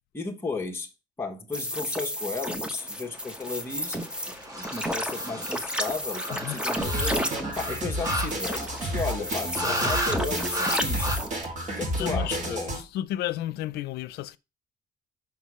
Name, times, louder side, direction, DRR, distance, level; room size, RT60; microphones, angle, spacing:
voice 1, 0.1-0.9 1.2-4.0 4.5-11.1 11.8-12.7, left 4 dB, 15° left, 1.3 m, -34 dB
sound 1, 1.5-11.3, equal, 5° right, 0.9 m, -32 dB
sound 2, 3.2-8.9 9.5-10.2 10.5-11.2, equal, 20° right, 1.5 m, -34 dB
sound 3, 6.8-12.8, right 1 dB, 45° right, 2.1 m, -31 dB
voice 2, 12.0-14.4, left 13 dB, 75° left, 0.5 m, -33 dB
5.9 x 3.9 x 6.1 m
cardioid pair, 110°, 17 cm